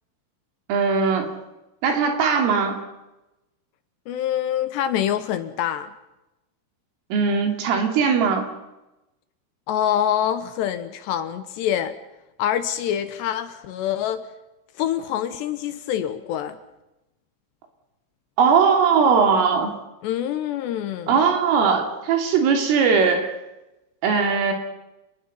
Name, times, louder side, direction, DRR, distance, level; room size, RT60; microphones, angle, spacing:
voice 1, 0.7-1.3 1.8-2.8 7.1-8.4 18.4-19.7 21.1-23.3 24.0-24.5, right 5 dB, 75° right, 4 dB, 5.4 m, -19 dB
voice 2, 4.1-5.9 9.7-11.9 12.4-14.3 14.8-16.6 20.0-21.2, left 10 dB, 75° left, 11 dB, 2.7 m, -25 dB
29.5 x 20.5 x 5.6 m, 0.96 s
omnidirectional pair, 6.0 m